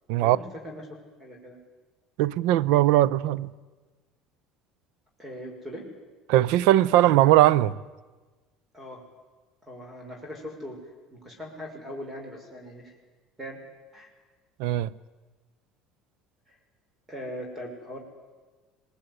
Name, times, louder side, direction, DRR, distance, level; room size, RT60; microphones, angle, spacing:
voice 1, 0.2-1.6 5.2-5.8 8.7-9.0 9.6-10.8 11.1-12.9 13.4-13.6 13.9-14.1 16.5-16.6 17.1-18.0, equal, 15° right, 6.2 m, -40 dB
voice 2, 2.2-3.5 6.3-7.7 14.6-14.9, right 14 dB, 80° right, 0.7 m, -20 dB
23.0 x 19.5 x 9.8 m
supercardioid pair, 110°, 0 cm